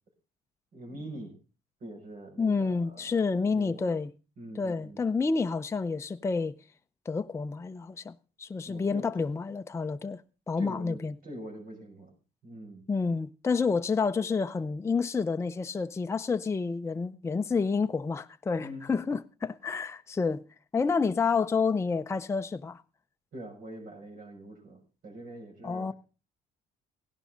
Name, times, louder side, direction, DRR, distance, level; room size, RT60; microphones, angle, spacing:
voice 1, 0.7-1.4 1.8-3.2 3.5-4.0 4.4-5.0 8.6-9.2 10.6-12.1 12.4-12.9 18.6-18.9 23.3-25.9, right 1 dB, 60° right, 6.4 m, -44 dB
voice 2, 2.4-4.1 4.6-6.6 7.1-10.2 10.5-11.1 12.9-20.4 20.7-22.8 25.6-25.9, left 4 dB, 15° left, 0.5 m, -29 dB
16.5 x 11.5 x 3.8 m
cardioid pair, 110°, 17 cm